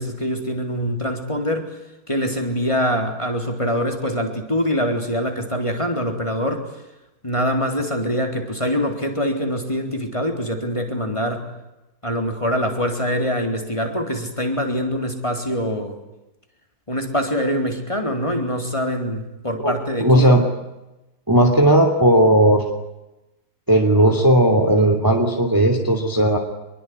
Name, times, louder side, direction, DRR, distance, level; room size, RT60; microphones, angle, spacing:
voice 1, 0.0-1.8 2.1-6.7 7.2-11.5 12.0-16.0 16.9-20.4, equal, 15° left, 3 dB, 4.0 m, -24 dB
voice 2, 20.0-20.4 21.3-22.6 23.7-26.4, right 1 dB, 10° right, 4 dB, 2.8 m, -15 dB
26.0 x 22.5 x 9.7 m, 0.99 s
omnidirectional pair, 2.2 m